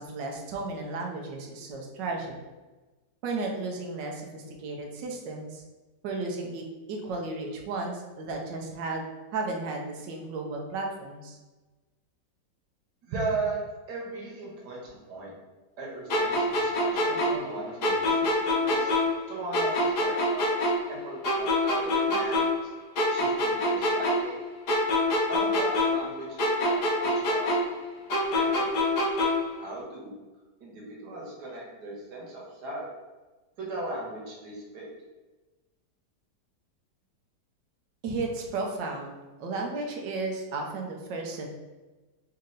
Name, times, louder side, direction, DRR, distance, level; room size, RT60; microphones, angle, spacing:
voice 1, 0.0-2.4 3.2-5.6 6.0-9.1 9.3-11.4 38.0-41.5, right 3 dB, 90° right, 1 dB, 1.4 m, -34 dB
voice 2, 13.0-13.6 13.9-15.3 15.8-18.9 19.3-20.5 20.9-22.7 23.1-24.4 25.3-27.6 28.3-28.7 29.6-30.1 30.6-32.8 33.6-34.9, right 2 dB, 70° right, -4 dB, 1.8 m, -37 dB
sound 1, 16.1-19.3 19.5-22.7 23.0-26.1 26.4-29.5, left 1 dB, 65° left, 1.5 m, -26 dB
4.2 x 2.8 x 3.8 m, 1.2 s
omnidirectional pair, 1.9 m